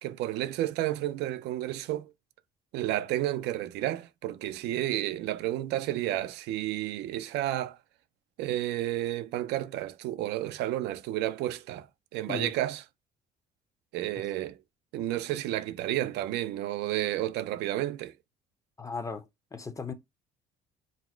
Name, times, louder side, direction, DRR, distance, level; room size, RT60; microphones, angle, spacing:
voice 1, 0.0-2.1 2.7-7.8 8.4-11.9 12.1-12.8 13.9-14.6 14.9-18.1, right 14 dB, 85° right, 0.5 m, -31 dB
voice 2, 18.8-19.2 19.5-19.9, left 4 dB, 20° left, 0.7 m, -36 dB
4.0 x 2.1 x 4.3 m
cardioid pair, 110°, 17 cm